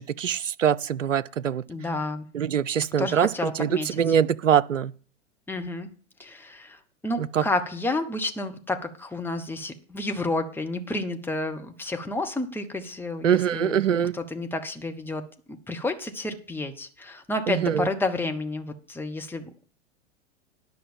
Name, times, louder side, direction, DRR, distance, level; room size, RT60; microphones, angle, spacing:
voice 1, 0.0-1.6 2.3-4.9 7.2-7.4 13.2-14.1 17.5-17.9, right 8 dB, 85° right, 0.5 m, -23 dB
voice 2, 1.7-2.3 3.0-4.2 5.5-5.9 6.2-13.8 14.1-15.2 15.5-19.6, left 2 dB, 5° left, 1.1 m, -30 dB
10.5 x 5.8 x 7.3 m
figure-of-eight pair, 95°, 37 cm